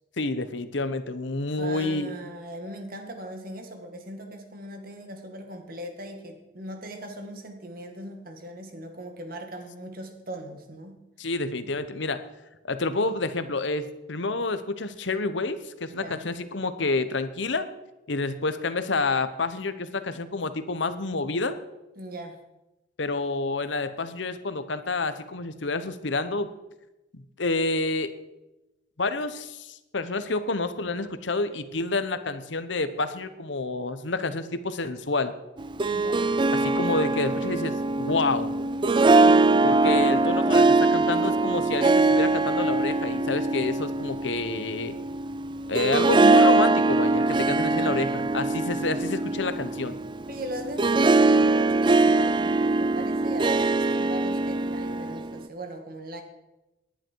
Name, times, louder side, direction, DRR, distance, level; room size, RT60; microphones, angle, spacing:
voice 1, 0.2-2.1 11.2-12.2 12.6-17.7 18.1-21.6 23.0-26.5 27.1-28.1 29.0-35.3 36.5-38.5 39.6-44.9 45.7-50.0, left 3 dB, 70° left, 11 dB, 1.0 m, -28 dB
voice 2, 1.6-11.0 15.9-16.2 22.0-22.4 35.8-36.4 50.3-56.2, right 1 dB, 50° right, 5 dB, 2.1 m, -39 dB
Harp, 35.6-55.4, right 3 dB, 25° right, 0.4 m, -22 dB
18.5 x 10.5 x 4.7 m, 0.99 s
head